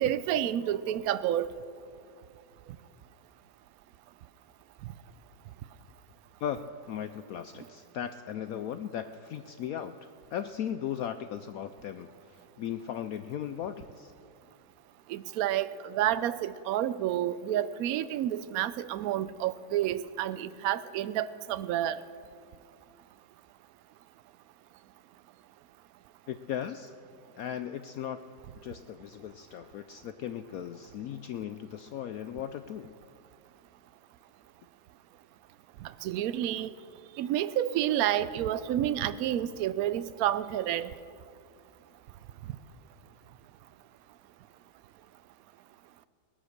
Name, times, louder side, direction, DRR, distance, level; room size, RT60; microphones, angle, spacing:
voice 1, 0.0-1.5 15.1-22.0 35.8-36.7 37.2-40.9, right 12 dB, 80° right, 15 dB, 0.8 m, -29 dB
voice 2, 6.4-9.9 10.3-14.1 26.3-26.9 27.4-28.2 28.6-32.9, left 9 dB, 80° left, 10 dB, 0.7 m, -37 dB
18.5 x 11.5 x 6.5 m, 2.3 s
omnidirectional pair, 2.0 m